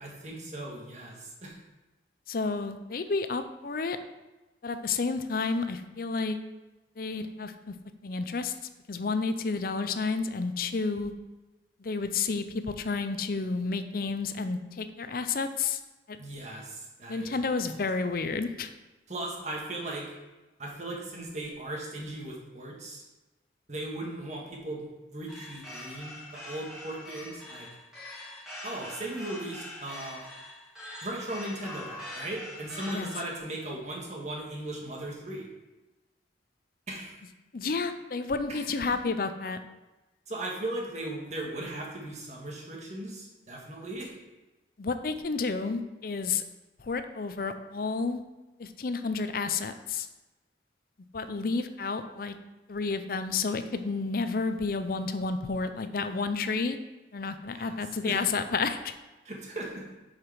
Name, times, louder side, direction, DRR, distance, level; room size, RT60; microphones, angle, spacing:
voice 1, 0.0-1.6 16.2-17.8 19.1-20.1 20.6-23.0 23.7-27.7 28.6-30.2 31.0-35.5 36.9-37.2 38.5-38.6 40.3-44.1 57.5-58.3 59.3-60.0, right 1 dB, 40° right, -1 dB, 1.6 m, -38 dB
voice 2, 2.3-4.0 4.6-6.4 7.0-7.8 8.0-8.5 8.9-11.1 11.8-15.8 16.1-16.2 17.1-18.7 32.9-33.1 37.5-39.6 44.8-46.4 46.8-48.2 48.6-50.1 51.1-52.4 52.7-56.8 57.1-58.9, left 4 dB, 50° left, 10 dB, 0.5 m, -31 dB
sound 1, 25.3-33.4, left 1 dB, 5° right, 2.7 m, -43 dB
7.2 x 4.9 x 4.9 m, 1.1 s
head